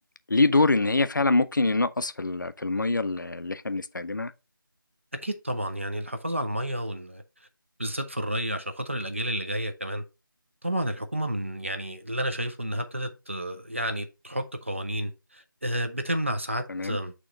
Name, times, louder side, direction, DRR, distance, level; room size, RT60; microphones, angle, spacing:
voice 1, 0.3-4.3 16.7-17.0, left 3 dB, 60° left, 0.6 m, -24 dB
voice 2, 5.1-7.2 7.8-10.0 10.6-17.1, equal, 35° right, 0.6 m, -31 dB
6.4 x 3.0 x 5.1 m
figure-of-eight pair, 180°, 12 cm